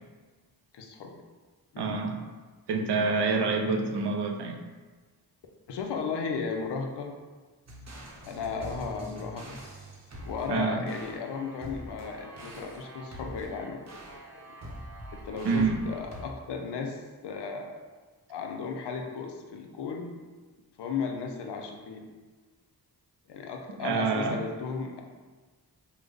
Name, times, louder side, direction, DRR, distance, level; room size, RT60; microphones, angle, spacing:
voice 1, 0.7-1.2 1.7-1.9 5.7-7.2 8.2-9.6 10.2-14.6 15.1-17.8 18.3-20.2 20.8-22.1 23.3-25.0, left 5 dB, 90° left, 3 dB, 0.5 m, -35 dB
voice 2, 1.8-2.2 2.7-4.6 10.5-10.8 15.5-15.8 23.8-24.4, right 4 dB, 85° right, 2 dB, 0.5 m, -27 dB
sound 1, 7.7-16.2, right 1 dB, 40° right, 0.8 m, -44 dB
3.3 x 2.0 x 3.4 m, 1.3 s
cardioid pair, 50°, 40 cm